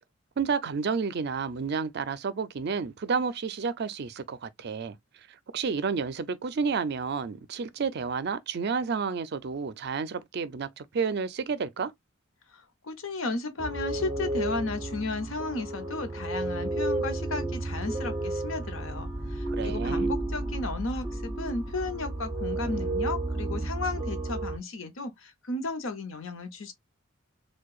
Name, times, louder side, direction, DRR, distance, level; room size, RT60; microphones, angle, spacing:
voice 1, 0.4-5.0 5.5-11.9 19.5-20.1, right 5 dB, 50° right, 0.4 m, -30 dB
voice 2, 12.5-26.7, left 3 dB, 70° left, 0.8 m, -34 dB
sound 1, 13.6-24.6, right 2 dB, 15° right, 0.7 m, -32 dB
4.5 x 2.2 x 2.3 m
head